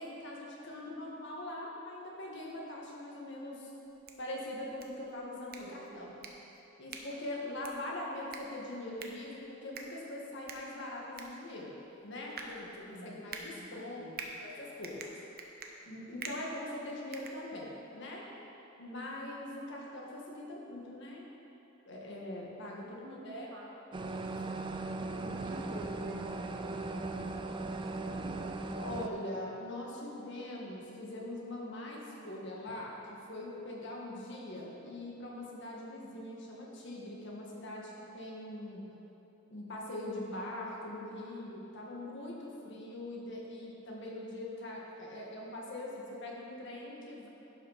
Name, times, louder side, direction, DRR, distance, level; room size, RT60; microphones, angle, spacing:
voice 1, 0.0-3.7 4.2-6.1 6.8-14.0 14.4-15.0 15.9-18.3 18.8-21.3 21.9-23.5 28.8-38.9 39.5-47.3, left 1 dB, 60° left, -3 dB, 1.7 m, -42 dB
sound 1, 3.8-18.0, right 4 dB, 50° right, 0.8 m, -49 dB
voice 2, 5.6-6.3 12.9-13.2 13.5-14.3 22.8-23.7 25.2-28.4, right 1 dB, 80° right, -5 dB, 2.3 m, -49 dB
sound 2, 23.9-29.1, right 2 dB, 25° right, 0.4 m, -38 dB
11.5 x 5.9 x 5.7 m, 3.0 s
head